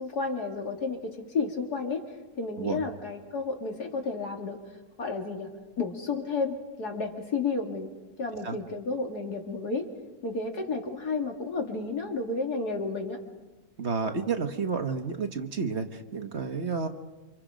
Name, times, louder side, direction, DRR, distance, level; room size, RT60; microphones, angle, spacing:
voice 1, 0.0-2.0 2.4-4.6 5.0-5.5 5.8-7.9 8.2-9.9 10.2-13.2, left 4 dB, 80° left, 2 dB, 3.2 m, -31 dB
voice 2, 13.8-16.9, right 5 dB, 45° right, 6 dB, 1.6 m, -30 dB
28.5 x 26.0 x 5.1 m, 1.2 s
omnidirectional pair, 1.7 m